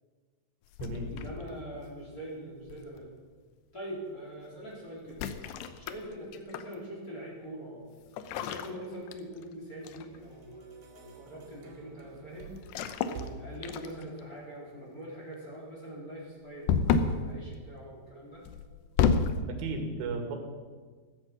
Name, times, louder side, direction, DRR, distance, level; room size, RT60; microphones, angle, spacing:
sound 1, 0.7-1.5 2.7-3.0 5.1-6.8 8.1-9.5 9.9-10.2 12.6-13.3 13.6-14.2 16.7-17.3 18.5-19.4, left 6 dB, 75° left, 2.6 m, -30 dB
sound 2, 0.8-3.4, left 4 dB, 60° left, 8.4 m, -44 dB
voice 1, 0.9-3.1 3.7-18.4, right 1 dB, 20° left, -4 dB, 4.2 m, -43 dB
sound 3, 9.9-14.3, right 4 dB, 65° right, 4.1 m, -49 dB
voice 2, 19.5-20.4, right 3 dB, 90° right, 4 dB, 4.7 m, -34 dB
15.0 x 14.5 x 6.2 m, 1.5 s
omnidirectional pair, 5.5 m